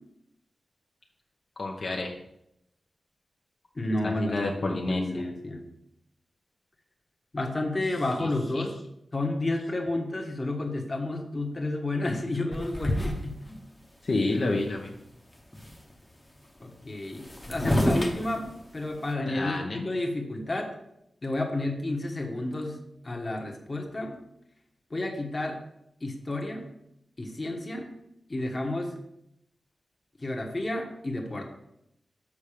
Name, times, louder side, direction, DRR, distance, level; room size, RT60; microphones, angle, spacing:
voice 1, 1.6-2.1 4.0-5.2 8.2-8.3 8.5-8.6 14.0-14.9 19.2-19.9, left 2 dB, 50° left, 0 dB, 0.8 m, -29 dB
voice 2, 3.7-5.6 7.3-8.7 9.1-13.4 16.6-20.7 21.2-22.8 23.0-24.2 24.9-25.6 26.0-26.7 27.2-27.9 28.3-28.9 30.2-31.5, left 2 dB, 25° left, 2 dB, 1.2 m, -31 dB
sound 1, 12.5-13.6 14.2-14.3 14.5-15.0 15.2-15.9 16.8-16.9 17.0-19.1, equal, 10° left, 1.0 m, -29 dB
7.3 x 5.7 x 5.0 m, 0.81 s
wide cardioid pair, 165°, 0 cm